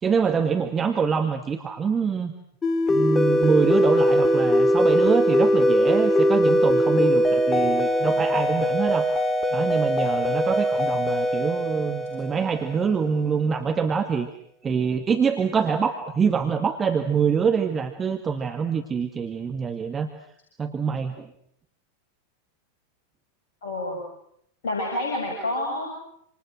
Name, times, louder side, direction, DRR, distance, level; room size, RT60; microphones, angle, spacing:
voice 1, 0.0-2.3 2.9-9.1 9.5-14.3 14.6-20.1 20.6-21.3, right 6 dB, 20° right, 5 dB, 2.1 m, -25 dB
sound 1, 2.6-13.0, equal, 15° left, 3.1 m, -21 dB
voice 2, 23.6-24.0 24.6-26.0, left 1 dB, 55° left, 0 dB, 7.6 m, -28 dB
28.5 x 28.0 x 6.4 m, 0.72 s
figure-of-eight pair, 90°, 0 cm